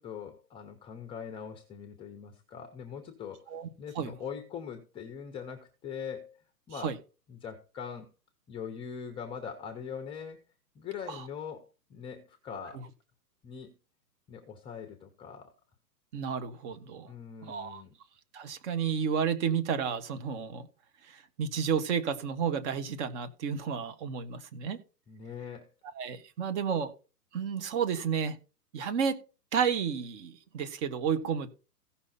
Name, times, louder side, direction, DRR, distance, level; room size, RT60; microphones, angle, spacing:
voice 1, 0.0-6.9 7.3-8.1 8.5-10.4 10.7-12.8 13.4-13.7 14.3-15.5 17.1-17.9 25.1-25.7, left 7 dB, 10° left, 6 dB, 0.7 m, -42 dB
voice 2, 16.1-17.1 17.4-17.8 18.3-20.7 21.0-24.8 25.9-26.9 27.3-28.4 28.7-29.2 29.5-31.5, right 7 dB, 45° right, 10 dB, 1.6 m, -31 dB
16.0 x 5.7 x 4.2 m, 0.33 s
hypercardioid pair, 135°, 49 cm